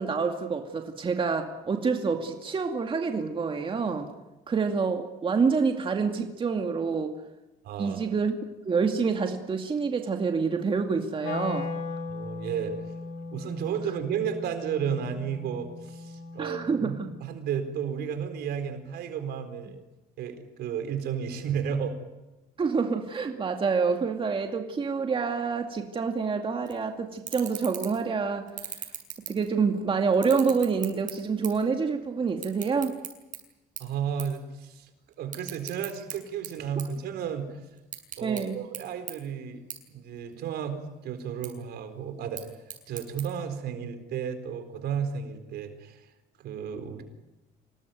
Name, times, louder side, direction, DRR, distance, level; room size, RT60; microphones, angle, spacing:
voice 1, 0.0-4.1 4.5-7.2 7.8-8.3 8.7-11.7 16.4-17.1 22.6-28.5 29.3-33.0 38.2-38.6, right 5 dB, 30° right, 4 dB, 2.3 m, -27 dB
voice 2, 7.6-8.1 12.1-12.9 13.3-16.9 17.2-19.8 20.2-22.0 33.8-34.9 35.2-37.6 38.2-39.6 39.9-46.1 46.4-47.0, right 7 dB, 75° right, 7 dB, 4.3 m, -33 dB
Wind instrument woodwind instrument, 11.2-17.3, left 4 dB, 80° left, 2.8 m, -38 dB
sound 1, 26.7-26.8 27.2-28.1 28.5-29.8 30.1-31.7 32.0-33.4 33.8-33.9 34.2-34.4 34.7-36.2 36.4-37.4 37.8-38.4 38.7-38.8 39.1-39.2 39.7-39.8 40.2-40.7 41.2-41.5 42.2-43.2, right 9 dB, 50° right, 7.3 m, -38 dB
27.0 x 19.0 x 9.4 m, 1.0 s
cardioid pair, 110°, 17 cm